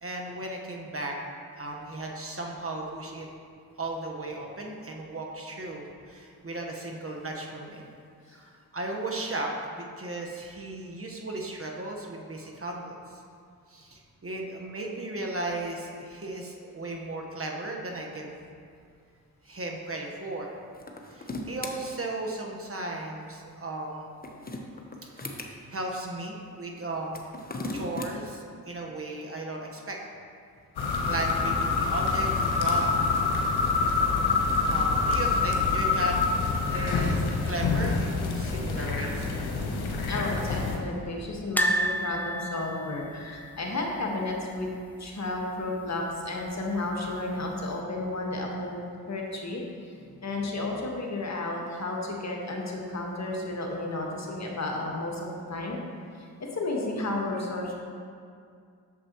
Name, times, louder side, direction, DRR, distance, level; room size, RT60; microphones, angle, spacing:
voice 1, 0.0-1.2 1.5-3.3 3.8-7.8 8.3-13.2 13.7-18.3 19.4-20.5 21.1-24.1 25.1-25.4 25.7-27.2 27.7-30.0 31.1-32.9 34.7-39.3, right 2 dB, 35° right, 0 dB, 1.3 m, -36 dB
sound 1, 20.7-21.7 24.0-25.5 27.0-28.1, left 2 dB, 25° left, 1.0 m, -36 dB
sound 2, 30.8-40.8, left 4 dB, 80° left, 1.1 m, -26 dB
voice 2, 40.1-44.7 45.0-48.8 49.1-49.6 50.2-55.8 56.2-57.7, left 2 dB, 45° left, -1 dB, 1.5 m, -32 dB
sound 3, 41.6-44.6 44.9-45.1 45.3-45.4 46.7-47.2 47.7-47.8, equal, 5° left, 0.6 m, -31 dB
8.3 x 6.9 x 3.0 m, 2.3 s
supercardioid pair, 40°, 39 cm